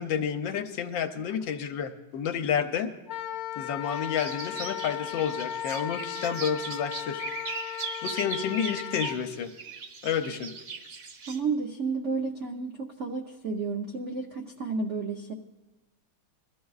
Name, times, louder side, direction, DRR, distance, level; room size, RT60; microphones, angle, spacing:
voice 1, 0.0-2.9 3.6-7.2 8.0-9.5 10.0-10.5, left 7 dB, 70° left, 7 dB, 1.4 m, -30 dB
Wind instrument woodwind instrument, 3.1-9.1, left 11 dB, 55° left, 1.2 m, -36 dB
sound 1, 3.8-11.4, right 5 dB, 55° right, 1.4 m, -39 dB
voice 2, 11.3-15.3, right 4 dB, 90° right, 2 dB, 0.6 m, -31 dB
22.5 x 13.0 x 2.4 m, 1.1 s
omnidirectional pair, 2.3 m